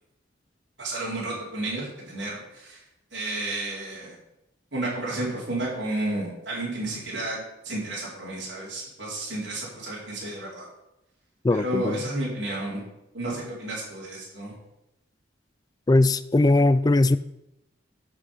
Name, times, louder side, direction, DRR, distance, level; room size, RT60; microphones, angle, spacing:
voice 1, 0.8-2.8 3.1-4.2 4.7-10.6 11.5-12.8 13.1-14.5, right 2 dB, 65° right, -7 dB, 4.2 m, -32 dB
voice 2, 11.4-12.0 15.9-17.2, left 2 dB, 20° left, 15 dB, 0.3 m, -19 dB
12.0 x 6.3 x 5.7 m, 0.87 s
head